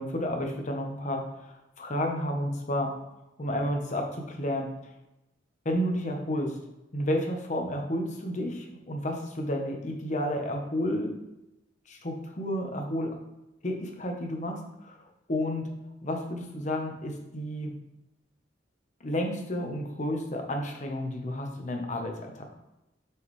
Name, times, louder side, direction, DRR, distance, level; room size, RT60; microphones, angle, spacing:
voice 1, 0.0-2.9 3.4-4.7 5.6-6.5 6.9-11.2 11.9-13.1 13.6-15.0 15.3-15.7 16.0-17.7 19.0-22.4, left 1 dB, 40° left, 2 dB, 1.0 m, -31 dB
6.5 x 4.7 x 3.2 m, 0.94 s
head